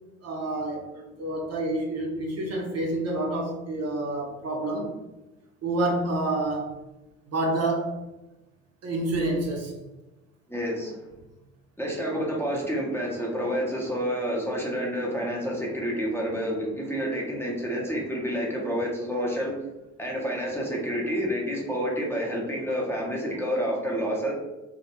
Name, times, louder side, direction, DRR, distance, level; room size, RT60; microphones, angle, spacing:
voice 1, 0.2-5.0 5.6-6.7 7.3-8.0 8.8-9.8, right 2 dB, 45° right, 0 dB, 0.6 m, -28 dB
voice 2, 10.5-11.0 11.8-19.6 20.0-24.3, equal, 5° left, -3 dB, 0.7 m, -29 dB
2.2 x 2.1 x 2.9 m, 1.0 s
hypercardioid pair, 55°, 34 cm